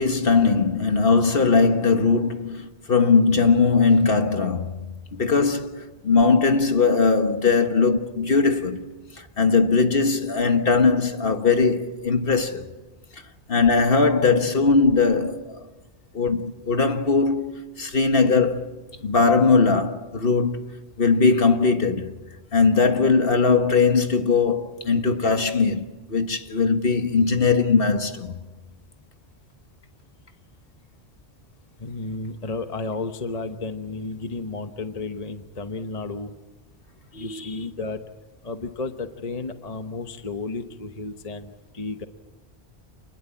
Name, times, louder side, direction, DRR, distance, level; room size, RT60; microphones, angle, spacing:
voice 1, 0.0-8.8 9.2-12.6 13.5-15.6 16.1-18.7 19.0-20.7 21.0-22.1 22.5-28.3 37.1-37.5, left 4 dB, 60° left, 1.7 m, -20 dB
voice 2, 31.8-36.3 37.1-38.0 38.4-42.1, left 3 dB, 35° left, 1.1 m, -32 dB
28.5 x 20.5 x 8.5 m
omnidirectional pair, 1.1 m